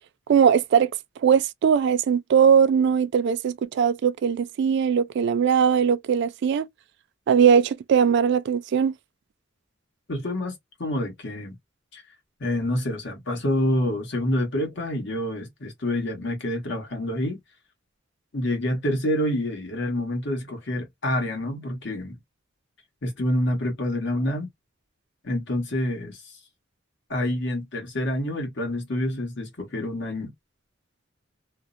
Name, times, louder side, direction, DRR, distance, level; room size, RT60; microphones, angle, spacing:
voice 1, 0.3-0.9 1.2-6.7 7.3-8.9, right 7 dB, 60° right, 0.3 m, -20 dB
voice 2, 10.1-11.6 11.9-12.0 12.4-17.4 18.3-22.2 23.0-24.5 25.2-26.3 27.1-30.3, left 1 dB, 65° left, 1.2 m, -27 dB
2.5 x 2.0 x 2.4 m
head